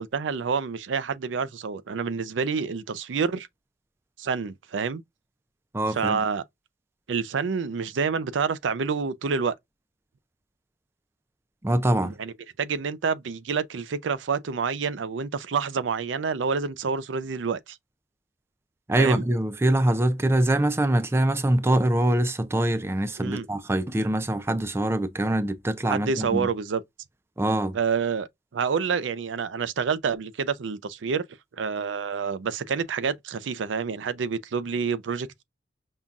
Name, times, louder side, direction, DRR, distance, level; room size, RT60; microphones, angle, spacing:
voice 1, 0.0-3.5 4.2-5.0 5.9-6.4 7.1-9.5 12.0-12.3 12.6-17.8 19.0-19.2 23.2-23.5 25.9-26.8 27.7-31.2 31.6-35.4, right 5 dB, 85° right, 0.5 m, -28 dB
voice 2, 5.7-6.2 11.6-12.2 18.9-26.5 27.4-27.8, right 1 dB, 15° right, 0.4 m, -24 dB
5.5 x 2.3 x 2.4 m
head